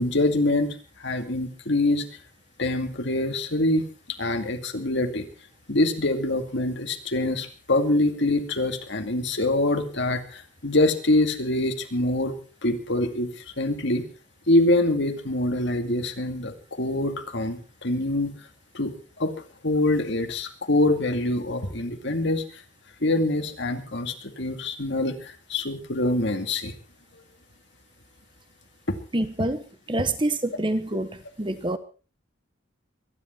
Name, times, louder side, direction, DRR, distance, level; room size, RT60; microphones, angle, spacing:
voice 1, 0.0-2.1 2.6-5.3 5.7-12.3 12.6-14.0 14.5-18.3 18.7-18.9 19.2-19.3 19.6-22.4 23.0-26.7 28.9-29.0, left 2 dB, 60° left, 6 dB, 2.3 m, -25 dB
voice 2, 29.1-29.6 29.9-31.8, right 1 dB, 25° right, 10 dB, 1.1 m, -26 dB
24.5 x 11.0 x 4.4 m, 0.35 s
head